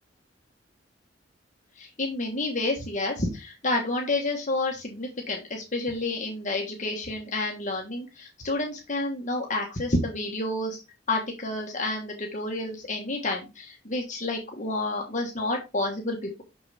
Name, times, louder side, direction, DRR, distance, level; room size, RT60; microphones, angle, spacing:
voice 1, 1.8-10.8 11.1-16.4, left 2 dB, 40° left, 0 dB, 1.4 m, -29 dB
6.4 x 6.0 x 3.5 m, 0.27 s
head